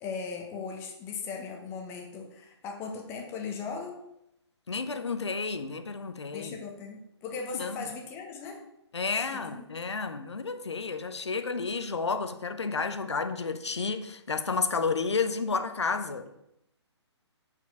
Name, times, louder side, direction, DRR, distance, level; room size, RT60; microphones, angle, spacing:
voice 1, 0.0-4.0 6.3-8.6 9.4-9.7, left 5 dB, 15° left, 0.9 m, -38 dB
voice 2, 4.7-6.6 7.5-7.8 8.9-16.3, left 4 dB, 70° left, 0.7 m, -31 dB
6.1 x 4.5 x 4.6 m
figure-of-eight pair, 135°, 15 cm